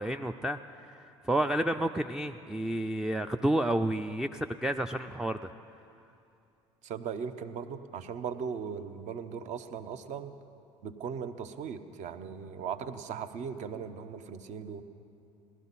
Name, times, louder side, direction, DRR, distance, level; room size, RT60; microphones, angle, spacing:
voice 1, 0.0-5.5, right 1 dB, 5° right, 4 dB, 0.3 m, -30 dB
voice 2, 6.8-10.3 10.8-14.8, right 7 dB, 50° right, 10 dB, 0.8 m, -38 dB
18.0 x 12.5 x 4.1 m, 2.7 s
hypercardioid pair, 70°, 16 cm